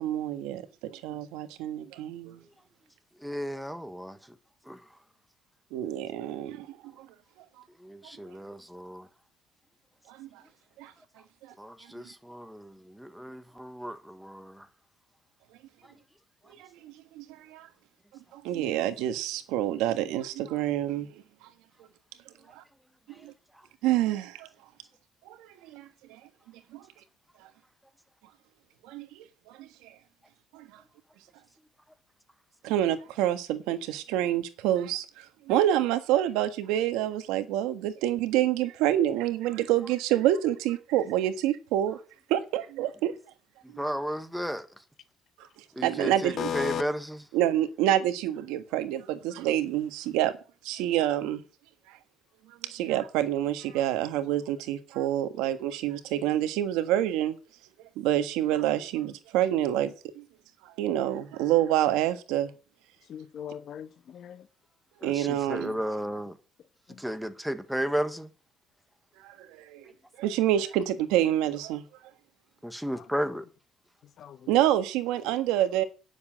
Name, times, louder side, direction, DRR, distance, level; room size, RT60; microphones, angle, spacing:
voice 1, 0.0-2.4 5.7-7.1 10.1-10.3 10.8-10.9 11.4-11.5 16.6-17.7 18.3-21.2 22.5-22.6 23.2-23.3 23.8-24.5 25.3-25.4 25.6-26.2 26.7-26.8 28.8-29.9 30.5-30.7 32.6-42.0 42.3-43.1 43.7-43.8 45.4-45.5 45.8-46.5 47.3-50.3 50.6-51.4 51.9-52.0 52.5-57.4 58.0-60.2 60.6-62.5 65.0-65.8 69.2-69.9 70.2-71.8 74.5-75.8, right 12 dB, 90° right, 1.5 m, -27 dB
voice 2, 3.2-4.2 4.7-4.8 7.8-9.1 11.6-14.7 43.8-44.7 45.7-47.2 65.0-66.4 67.0-68.3 72.6-73.4, equal, ahead, 1.3 m, -34 dB
voice 3, 46.4-46.8 63.1-64.4 66.9-67.0 74.2-74.4, left 9 dB, 55° left, 1.3 m, -35 dB
9.9 x 7.2 x 7.4 m
cardioid pair, 115°, 0 cm